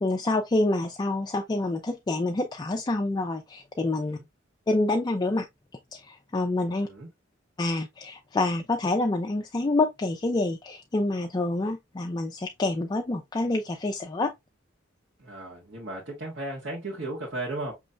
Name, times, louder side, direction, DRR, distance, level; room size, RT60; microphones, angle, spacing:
voice 1, 0.0-4.2 4.7-5.5 5.9-6.9 7.6-14.3, left 2 dB, 20° left, 0.4 m, -27 dB
voice 2, 6.6-7.1 15.2-17.7, right 2 dB, 60° right, 1.5 m, -35 dB
5.5 x 3.1 x 2.4 m
head